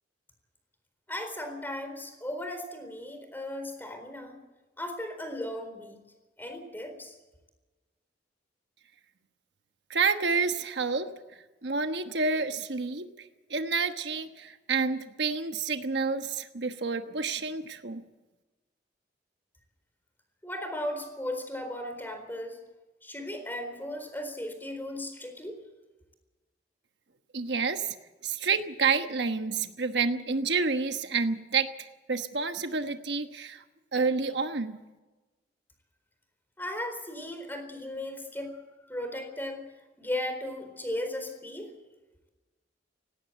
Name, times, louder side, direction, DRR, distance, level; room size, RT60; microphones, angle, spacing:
voice 1, 1.1-4.4 4.8-6.0 6.4-7.2 20.4-22.6 23.0-25.6 36.6-38.6 38.9-39.6 40.0-41.7, left 1 dB, 10° left, 6 dB, 4.2 m, -36 dB
voice 2, 9.9-11.1 11.6-18.0 27.3-28.0 28.2-33.6 33.9-34.8, right 4 dB, 70° right, 7 dB, 1.2 m, -29 dB
18.5 x 17.5 x 8.2 m, 1.2 s
head